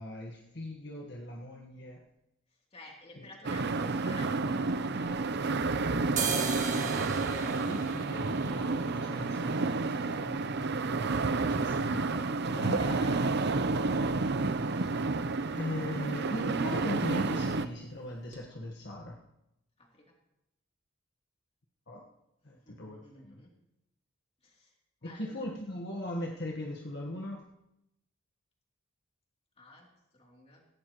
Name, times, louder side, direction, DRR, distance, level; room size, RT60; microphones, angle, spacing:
voice 1, 0.0-2.0 3.2-3.3 6.5-9.7 10.0-13.0 14.4-15.1 15.5-19.2 21.9-22.0 22.4-23.4 25.0-27.4, left 1 dB, 55° left, -1 dB, 1.5 m, -40 dB
voice 2, 2.7-5.8 10.2-10.7 12.5-13.3 19.8-20.2 22.5-23.5 24.4-24.7 25.0-25.6 29.6-29.9 30.1-30.6, left 1 dB, 30° left, -1 dB, 3.2 m, -52 dB
sound 1, 3.4-17.7, right 3 dB, 55° right, 0.7 m, -30 dB
sound 2, 4.7-5.6 6.0-13.7 14.0-14.1 14.4-14.9 15.2-15.5 15.7-16.0 16.2-17.0 17.3-17.5 17.9-18.0 18.3-18.4, right 5 dB, 35° right, 1.7 m, -40 dB
18.0 x 16.5 x 3.1 m, 0.85 s
head